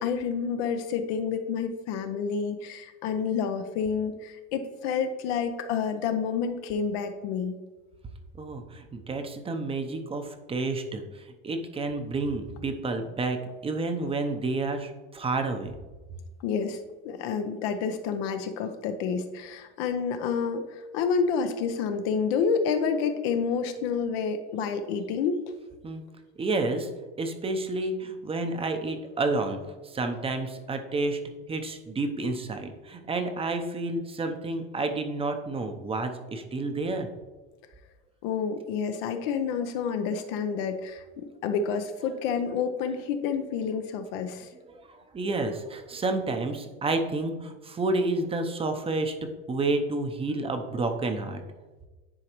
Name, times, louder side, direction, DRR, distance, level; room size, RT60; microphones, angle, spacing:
voice 1, 0.0-7.6 16.4-16.8 17.0-25.4 38.2-44.5, left 6 dB, 70° left, 7 dB, 0.7 m, -29 dB
voice 2, 8.4-13.4 13.6-15.7 25.8-26.0 26.4-26.9 27.2-31.2 31.5-37.1 44.5-51.4, right 2 dB, 20° right, 6 dB, 0.7 m, -30 dB
9.9 x 3.9 x 3.0 m, 1.2 s
supercardioid pair, 110°, 32 cm